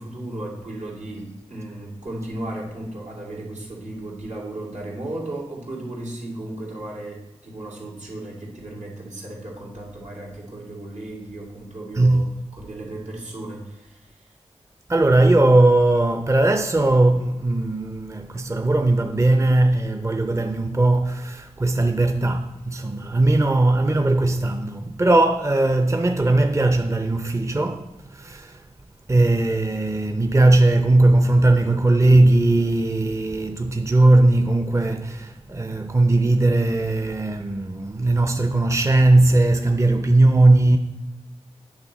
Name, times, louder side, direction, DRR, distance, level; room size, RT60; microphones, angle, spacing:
voice 1, 0.0-14.3, right 1 dB, 80° right, 2.3 m, -35 dB
voice 2, 11.9-12.3 14.9-28.6 29.1-40.8, right 2 dB, 25° right, 0.6 m, -18 dB
8.8 x 5.6 x 4.1 m
cardioid pair, 45°, 12 cm